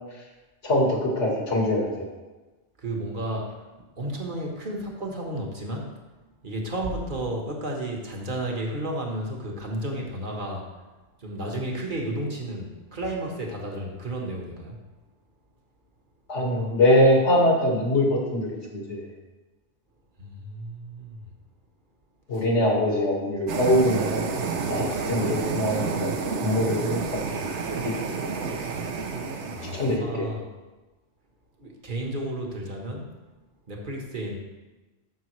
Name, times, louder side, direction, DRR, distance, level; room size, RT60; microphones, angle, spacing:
voice 1, 0.6-1.9 16.3-19.0 22.3-24.3 24.7-26.1 26.4-27.0 27.3-27.5 27.8-27.9 29.7-30.3, left 1 dB, 75° left, -1 dB, 2.1 m, -23 dB
voice 2, 2.8-3.6 4.0-5.9 6.4-10.7 11.2-14.8 20.2-21.3 22.3-22.4 29.5-30.5 31.6-33.0 33.7-34.4, right 1 dB, 45° right, 0 dB, 1.4 m, -32 dB
sound 1, 23.5-30.0, right 4 dB, 75° right, 1.1 m, -29 dB
13.5 x 5.6 x 3.2 m, 1.2 s
omnidirectional pair, 1.2 m